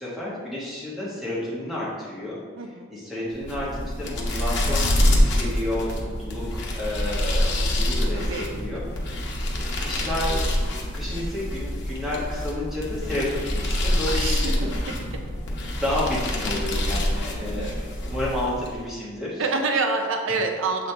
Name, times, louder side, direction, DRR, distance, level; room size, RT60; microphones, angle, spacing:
voice 1, 0.0-2.4 2.7-9.3 9.5-14.8 15.7-19.5, left 1 dB, ahead, -8 dB, 1.4 m, -31 dB
voice 2, 2.6-2.9 8.1-8.5 14.1-14.7 17.4-17.7 19.4-20.9, right 3 dB, 75° right, 4 dB, 0.5 m, -27 dB
sound 1, 3.3-18.8, left 1 dB, 55° left, 0.9 m, -26 dB
7.3 x 3.9 x 3.3 m, 1.5 s
head